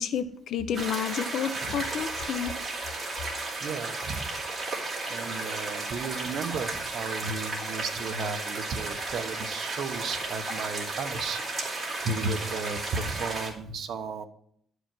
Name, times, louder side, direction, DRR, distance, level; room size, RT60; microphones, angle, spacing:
voice 1, 0.0-2.5, left 8 dB, 60° left, 12 dB, 0.5 m, -30 dB
sound 1, 0.7-13.5, right 3 dB, 20° right, 2.7 m, -34 dB
voice 2, 3.6-4.3 5.1-11.4 11.7-14.3, right 4 dB, 55° right, 7 dB, 0.9 m, -34 dB
11.5 x 5.0 x 6.1 m, 0.65 s
cardioid pair, 165°, 0 cm